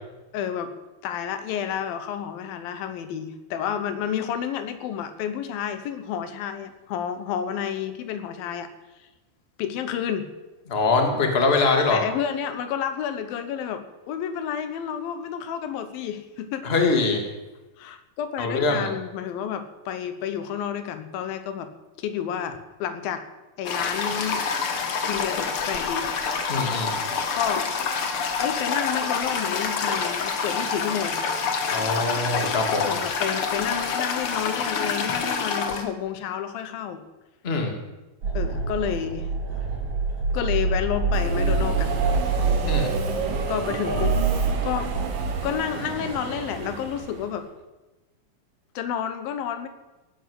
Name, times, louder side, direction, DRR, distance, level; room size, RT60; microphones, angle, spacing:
voice 1, 0.3-0.7 1.0-8.7 9.6-10.3 11.9-16.6 17.8-21.7 22.0-23.2 23.6-24.5 25.1-26.1 27.3-27.7 28.1-31.2 32.9-37.1 38.3-39.3 40.3-42.0 43.5-44.2 44.6-44.9 45.4-47.5 48.8-49.7, left 9 dB, 90° left, 10 dB, 2.9 m, -30 dB
voice 2, 10.7-12.0 16.6-17.2 18.4-18.9 26.5-26.9 31.7-32.9 37.4-37.7 42.7-42.9, left 3 dB, 20° left, 3 dB, 1.9 m, -23 dB
Toilet flush, 23.6-35.8, left 5 dB, 55° left, 1.7 m, -27 dB
sound 1, 38.2-45.5, right 3 dB, 50° right, 5.9 m, -26 dB
Subway metro underground, 41.1-47.4, right 5 dB, 75° right, 3.4 m, -31 dB
17.0 x 9.3 x 7.9 m, 1.1 s
omnidirectional pair, 4.0 m